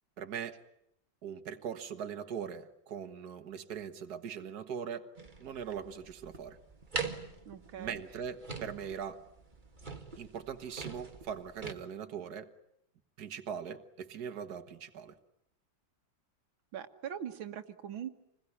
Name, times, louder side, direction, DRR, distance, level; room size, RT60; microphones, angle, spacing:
voice 1, 0.2-0.6 1.2-5.1 5.4-6.6 7.8-9.3 10.2-12.5 13.2-15.1, right 7 dB, 55° right, 7 dB, 1.9 m, -41 dB
sound 1, 5.2-11.7, right 4 dB, 25° right, 2.0 m, -43 dB
voice 2, 7.5-8.0 16.7-18.1, right 9 dB, 90° right, 8 dB, 2.2 m, -41 dB
27.5 x 21.0 x 10.0 m, 0.78 s
omnidirectional pair, 2.1 m